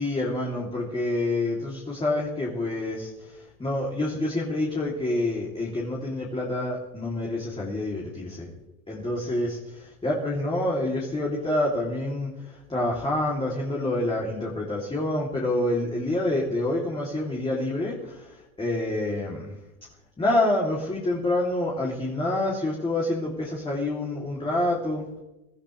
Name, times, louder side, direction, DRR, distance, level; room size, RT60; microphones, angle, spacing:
voice 1, 0.0-3.1 3.6-8.5 8.9-12.3 12.7-18.2 18.6-19.5 20.2-25.0, left 1 dB, 10° left, -4 dB, 3.1 m, -27 dB
23.0 x 13.5 x 3.4 m, 0.98 s
supercardioid pair, 115°, 43 cm